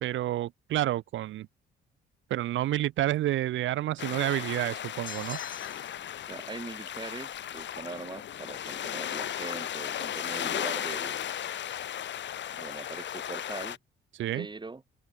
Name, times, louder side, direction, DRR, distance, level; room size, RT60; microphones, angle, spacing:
voice 1, 0.0-1.5 2.3-5.4 14.2-14.5, right 14 dB, 75° right, 0.9 m, -29 dB
sound 1, 4.0-13.8, left 10 dB, 65° left, 3.9 m, -36 dB
sound 2, 5.1-6.1, left 6 dB, 45° left, 5.3 m, -44 dB
voice 2, 6.3-11.2 12.6-13.8 14.3-14.8, right 3 dB, 20° right, 6.7 m, -41 dB
cardioid pair, 90°, 20 cm